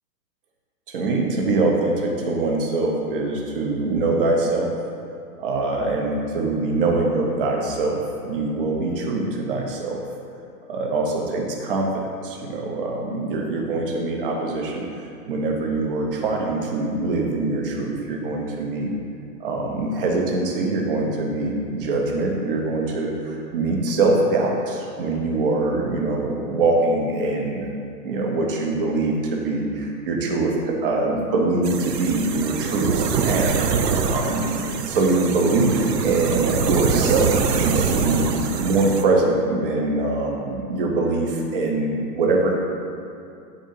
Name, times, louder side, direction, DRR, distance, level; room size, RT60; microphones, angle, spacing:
voice 1, 0.9-4.7 5.4-10.0 10.7-14.9 15.3-18.9 19.4-27.7 28.0-38.3 38.6-42.5, right 2 dB, 35° right, 0 dB, 0.7 m, -23 dB
sound 1, 31.6-39.0, right 5 dB, 75° right, 0.7 m, -24 dB
9.7 x 3.7 x 2.7 m, 2.5 s
hypercardioid pair, 160°, 49 cm